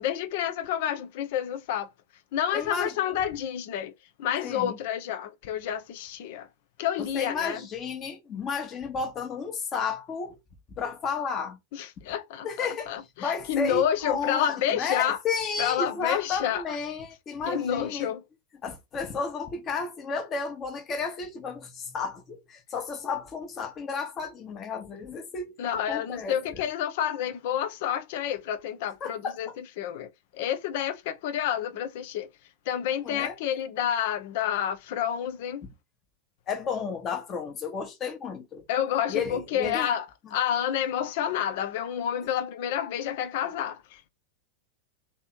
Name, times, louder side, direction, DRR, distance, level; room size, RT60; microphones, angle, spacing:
voice 1, 0.0-1.9 2.3-3.9 4.2-6.5 6.8-7.6 11.7-15.2 15.6-16.8 17.5-18.2 25.6-32.3 32.7-35.6 38.7-40.1 40.3-44.0, left 10 dB, 50° left, 0.7 m, -29 dB
voice 2, 2.5-3.1 4.4-4.8 7.0-10.4 10.8-11.6 12.4-12.9 13.2-18.1 18.6-25.6 25.9-26.6 29.0-29.4 33.0-33.4 36.5-38.6 39.1-39.9 40.2-40.3, left 5 dB, 30° left, 1.2 m, -32 dB
3.4 x 3.0 x 4.4 m
figure-of-eight pair, 90°, 0 cm